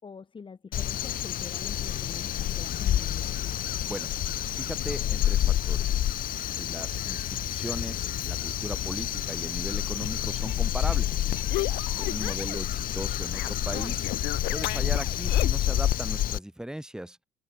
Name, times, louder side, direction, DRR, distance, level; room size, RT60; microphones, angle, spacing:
voice 1, 0.0-3.3 11.8-12.3, left 5 dB, 30° left, 3.6 m, -45 dB
Crow, 0.7-16.4, left 12 dB, 55° left, 1.0 m, -28 dB
voice 2, 4.6-6.0 6.5-11.2 12.0-14.1 14.5-17.2, right 1 dB, 5° right, 3.4 m, -38 dB
sound 1, 10.0-12.7 12.9-15.7, left 20 dB, 85° left, 0.7 m, -36 dB
cardioid pair, 110°, 17 cm